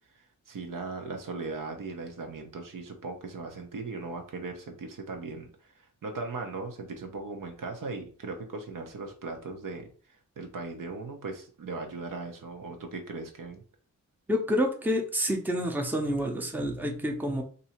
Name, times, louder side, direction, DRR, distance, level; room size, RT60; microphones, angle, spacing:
voice 1, 0.5-5.7 6.0-9.9 10.4-13.6, right 3 dB, 70° right, 3 dB, 0.9 m, -38 dB
voice 2, 14.3-17.4, equal, 5° right, 2 dB, 0.7 m, -28 dB
2.7 x 2.7 x 4.3 m, 0.42 s
wide cardioid pair, 95°, 33 cm